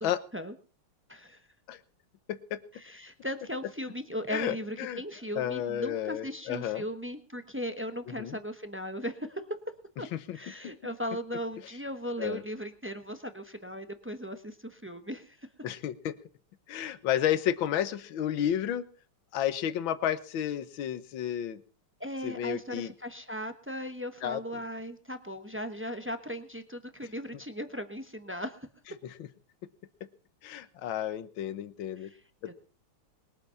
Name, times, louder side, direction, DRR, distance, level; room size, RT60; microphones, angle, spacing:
voice 1, 0.0-0.5 1.1-1.4 2.7-9.4 10.0-10.1 10.3-15.4 22.0-28.7 32.0-32.2 32.5-32.6, equal, 20° right, 8 dB, 0.3 m, -37 dB
voice 2, 2.3-2.6 4.3-5.0 5.4-6.8 8.1-8.4 10.1-10.4 12.2-12.4 15.6-16.2 16.7-18.9 19.3-21.6 22.2-22.9 24.2-24.4 29.0-29.3 30.0-30.1 30.4-32.1 32.4-32.5, left 10 dB, 65° left, 13 dB, 1.7 m, -32 dB
21.5 x 8.4 x 5.7 m, 0.40 s
omnidirectional pair, 2.4 m